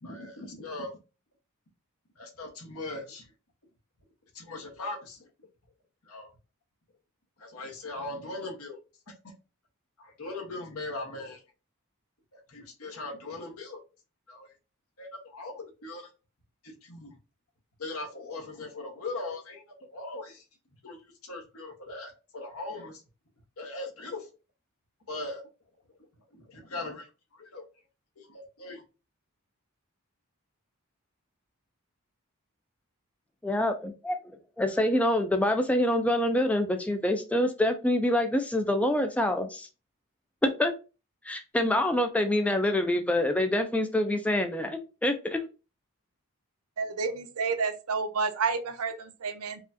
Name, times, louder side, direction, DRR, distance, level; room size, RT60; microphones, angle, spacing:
voice 1, 0.0-0.9 2.2-3.3 4.3-5.3 6.0-6.3 7.4-8.8 9.2-9.3 10.0-11.4 12.3-13.8 14.3-14.5 15.0-16.1 16.6-17.2 17.8-20.4 20.8-23.0 23.6-24.3 25.1-25.4 26.3-27.6 28.2-28.8, left 2 dB, 75° left, 2 dB, 1.1 m, -40 dB
voice 2, 33.4-34.2 34.6-39.7 40.4-40.7 41.2-45.4, left 1 dB, 5° left, 6 dB, 0.3 m, -26 dB
voice 3, 46.8-49.6, right 5 dB, 80° right, 9 dB, 0.6 m, -30 dB
4.8 x 2.3 x 2.6 m, 0.31 s
head